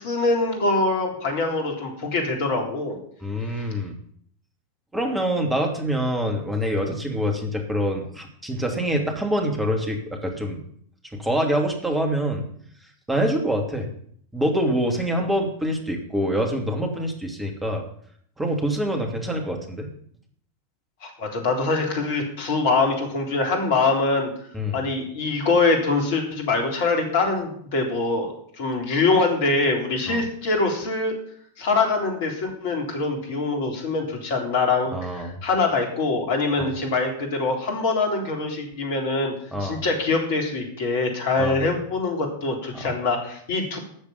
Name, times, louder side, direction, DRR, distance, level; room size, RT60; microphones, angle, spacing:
voice 1, 0.0-3.0 3.5-3.7 21.0-24.3 24.7-31.2 31.6-39.3 39.6-43.8, left 3 dB, 50° left, 2 dB, 3.6 m, -24 dB
voice 2, 3.2-3.9 4.9-10.6 11.1-12.4 13.1-13.9 14.3-17.8 18.4-19.9 24.5-24.8 30.1-30.2 34.9-35.3 36.6-36.7 39.5-39.8 41.4-41.6 42.7-42.9, equal, 10° right, 3 dB, 2.7 m, -25 dB
13.0 x 6.8 x 7.3 m, 0.63 s
figure-of-eight pair, 90°, 0 cm